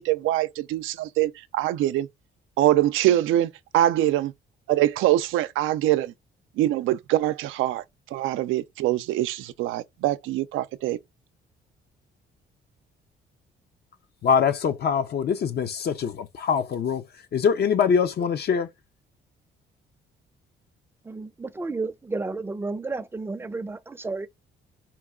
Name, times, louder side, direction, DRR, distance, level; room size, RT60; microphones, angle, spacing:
voice 1, 0.0-2.1 2.6-4.3 4.7-6.1 6.6-7.8 8.1-11.0, right 14 dB, 90° right, 0.4 m, -23 dB
voice 2, 14.2-17.0 17.3-18.7, left 7 dB, 55° left, 0.6 m, -23 dB
voice 3, 21.1-24.3, right 3 dB, 10° right, 0.5 m, -32 dB
4.4 x 2.3 x 3.6 m
cardioid pair, 90°, 20 cm